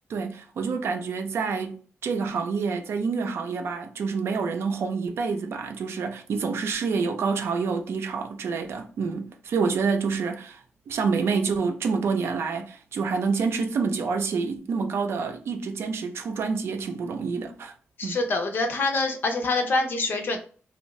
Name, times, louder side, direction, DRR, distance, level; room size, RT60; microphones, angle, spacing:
voice 1, 0.1-10.6 10.9-17.7 18.0-18.2, right 5 dB, 75° right, 0.5 m, -27 dB
voice 2, 18.0-20.4, left 3 dB, 55° left, 0.6 m, -25 dB
2.6 x 2.4 x 3.1 m
wide cardioid pair, 130°, 4 cm